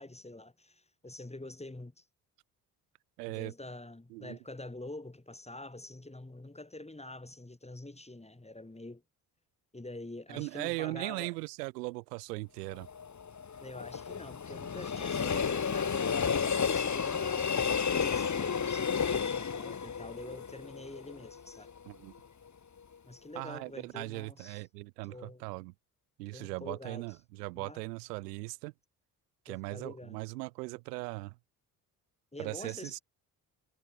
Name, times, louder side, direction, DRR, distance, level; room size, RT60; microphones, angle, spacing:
voice 1, 0.0-2.0 3.3-9.0 9.7-11.4 13.6-21.7 23.1-24.6 25.1-25.4 26.3-27.0 27.6-27.8 29.5-30.2 32.3-33.0, left 2 dB, 15° left, 5.1 m, -46 dB
voice 2, 3.2-3.5 4.1-4.4 10.3-12.9 21.9-22.1 23.3-25.7 26.2-28.7 29.5-31.3 32.4-33.0, right 24 dB, 85° right, 2.4 m, -39 dB
Train, 12.7-21.8 22.2-22.3, left 6 dB, 35° left, 2.5 m, -32 dB
hypercardioid pair, 45°, 46 cm